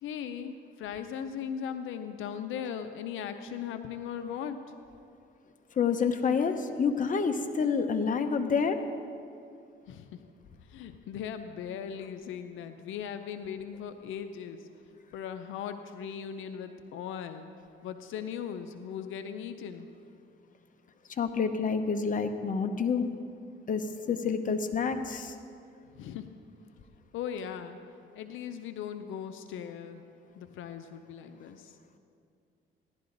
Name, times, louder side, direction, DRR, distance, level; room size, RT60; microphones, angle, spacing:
voice 1, 0.0-4.6 9.9-10.1 10.7-14.6 15.1-17.5 17.8-19.9 25.9-26.3 27.1-27.8 28.2-30.0 30.3-31.8, left 8 dB, 85° left, 8 dB, 0.6 m, -38 dB
voice 2, 5.8-8.8 21.2-23.1 23.7-25.3, left 5 dB, 40° left, 7 dB, 0.9 m, -28 dB
16.5 x 11.5 x 3.9 m, 2.4 s
cardioid pair, 90°, 20 cm